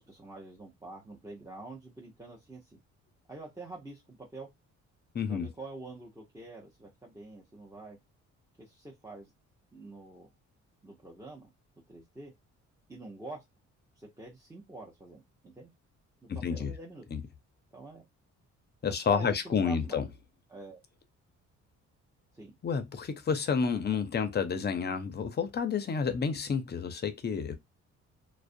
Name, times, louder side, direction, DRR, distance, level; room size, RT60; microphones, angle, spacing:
voice 1, 0.1-2.8 3.3-4.5 5.3-8.0 8.6-9.3 9.7-10.3 10.8-11.5 11.9-12.3 12.9-13.4 14.0-15.7 16.2-17.0 17.7-18.0 18.9-20.1 20.5-20.8 22.3-22.5, right 2 dB, 10° right, 0.7 m, -46 dB
voice 2, 5.1-5.5 16.3-16.7 17.1-17.2 18.8-20.0 22.6-27.6, left 6 dB, 35° left, 0.5 m, -30 dB
2.3 x 2.1 x 2.6 m
cardioid pair, 90°, 30 cm